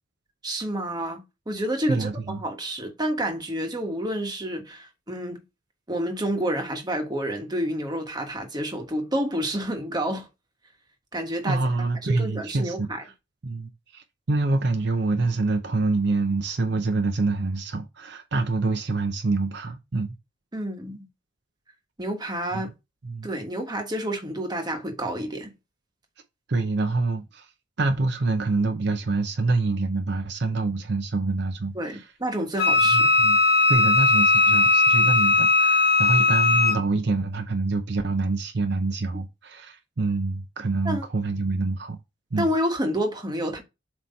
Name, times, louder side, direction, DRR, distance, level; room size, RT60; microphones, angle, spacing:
voice 1, 0.4-5.4 5.9-10.3 11.1-11.6 12.0-13.0 20.5-21.1 22.0-22.7 23.2-25.5 31.7-33.1 40.8-41.0 42.4-43.6, right 1 dB, 20° right, 1.3 m, -29 dB
voice 2, 1.9-2.4 11.5-13.1 13.4-20.2 22.5-22.6 23.0-23.3 26.5-27.5 27.8-32.0 32.9-33.4 33.7-42.0 42.3-42.5, right 3 dB, 60° right, 0.7 m, -26 dB
Wind instrument woodwind instrument, 32.6-36.8, left 3 dB, 55° left, 2.2 m, -19 dB
7.6 x 3.1 x 4.1 m
head